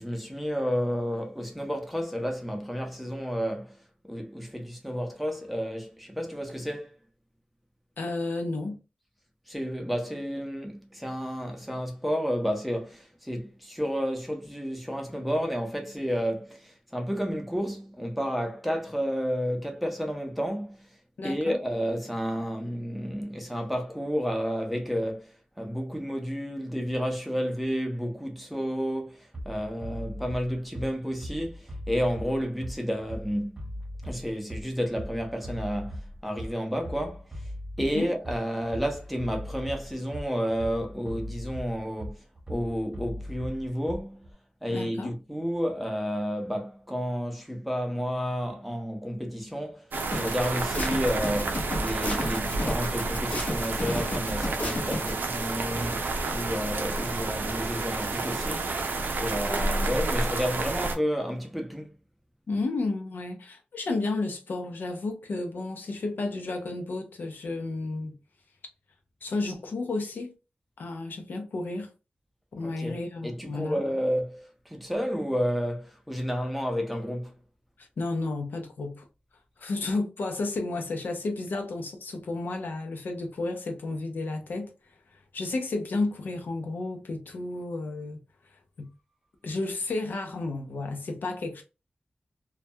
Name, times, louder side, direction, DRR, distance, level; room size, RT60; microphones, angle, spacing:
voice 1, 0.0-3.8 4.0-6.9 9.5-20.9 21.2-33.6 34.0-37.5 37.8-44.3 44.6-61.9 72.6-77.3, equal, ahead, 0.7 m, -31 dB
voice 2, 8.0-8.8 21.2-21.6 37.9-38.1 44.7-45.1 59.5-59.8 62.5-68.2 69.2-70.3 70.8-71.9 72.5-73.8 77.8-79.1 79.6-88.9 89.4-91.6, left 2 dB, 85° left, 0.6 m, -32 dB
Bass drum, 29.3-44.3, equal, 25° right, 1.0 m, -39 dB
sound 1, 49.9-61.0, right 3 dB, 85° right, 0.4 m, -30 dB
sound 2, 50.1-55.1, left 1 dB, 50° left, 0.7 m, -32 dB
2.2 x 2.2 x 2.7 m
wide cardioid pair, 80°, 3 cm